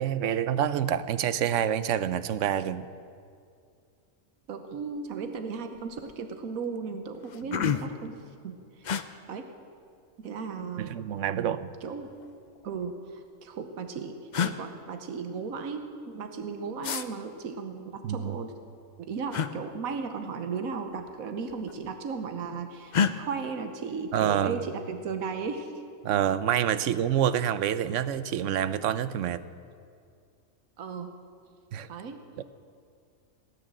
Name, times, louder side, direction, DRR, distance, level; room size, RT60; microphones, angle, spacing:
voice 1, 0.0-2.9 10.8-11.7 18.0-18.4 24.1-24.6 26.0-29.4 31.7-31.9 32.4-32.5, right 10 dB, 70° right, 14 dB, 0.9 m, -27 dB
voice 2, 4.5-8.2 8.4-8.8 9.3-9.5 10.2-11.0 11.4-12.1 12.6-14.2 14.4-18.5 19.0-25.7 30.8-31.2 31.9-32.2, right 5 dB, 90° right, 7 dB, 1.4 m, -36 dB
Gasps Male Quick, 5.1-5.4 5.7-6.2 6.8-6.9 7.1-8.1 8.8-9.0 10.3-10.9 12.1-12.9 13.8-13.9 14.3-14.6 16.8-17.1 19.3-19.5 20.9-21.1 21.4-22.0 22.9-23.1, left 7 dB, 50° left, 0.5 m, -30 dB
18.0 x 9.8 x 7.6 m, 2.3 s
omnidirectional pair, 1.4 m